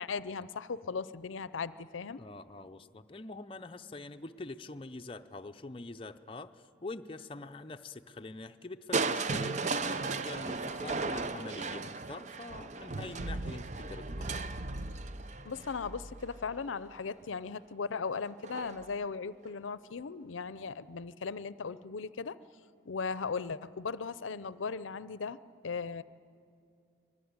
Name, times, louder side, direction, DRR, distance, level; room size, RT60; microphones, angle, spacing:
voice 1, 0.0-2.2 15.4-22.4 22.9-25.4 25.6-26.0, left 5 dB, 85° left, 16 dB, 0.6 m, -37 dB
voice 2, 2.2-14.5, left 2 dB, 25° left, 7 dB, 0.6 m, -45 dB
Crushing, 8.9-16.9 18.4-18.9 19.4-19.5, right 3 dB, 35° right, 0.6 m, -36 dB
25.0 x 20.0 x 9.5 m, 2.4 s
head